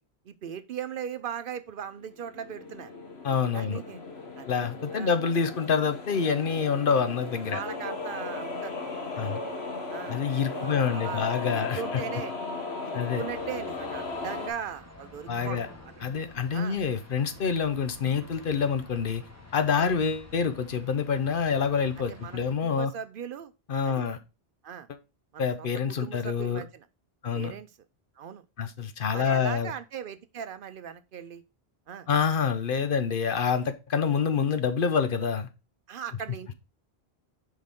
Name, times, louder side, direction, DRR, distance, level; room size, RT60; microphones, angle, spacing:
voice 1, 0.2-2.9 3.5-4.0 4.4-4.6 4.9-5.1 7.5-8.7 9.1-9.3 9.9-10.2 10.5-12.3 12.8-15.6 16.0-16.1 16.5-16.8 19.8-19.9 22.1-23.5 23.8-24.0 24.6-24.9 25.3-26.9 27.3-27.7 28.2-28.4 29.1-31.4 31.9-32.1 35.9-36.5, right 8 dB, 65° right, 0.7 m, -39 dB
sound 1, 2.0-14.5, left 3 dB, 85° left, 1.7 m, -36 dB
voice 2, 3.2-3.8 4.5-7.6 9.2-9.4 10.1-12.0 12.9-13.2 15.3-15.7 16.0-19.2 19.5-22.9 23.7-24.2 25.4-26.6 27.2-27.5 28.6-29.7 32.1-35.5, left 6 dB, 60° left, 0.9 m, -27 dB
sound 2, 13.3-22.6, left 2 dB, 15° left, 1.2 m, -49 dB
6.4 x 5.1 x 3.6 m
omnidirectional pair, 1.0 m